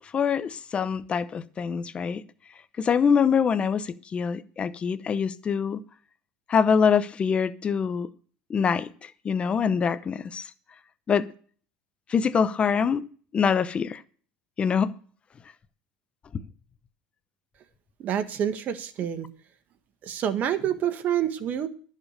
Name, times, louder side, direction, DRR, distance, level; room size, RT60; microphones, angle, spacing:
voice 1, 0.1-2.2 2.8-5.8 6.5-8.1 8.5-10.5 11.1-11.2 12.1-13.1 13.3-14.0 14.6-14.9, left 6 dB, 30° left, 0.8 m, -24 dB
voice 2, 18.0-19.3 20.0-21.7, right 9 dB, 45° right, 1.7 m, -27 dB
12.5 x 7.4 x 6.6 m
supercardioid pair, 110°, 4 cm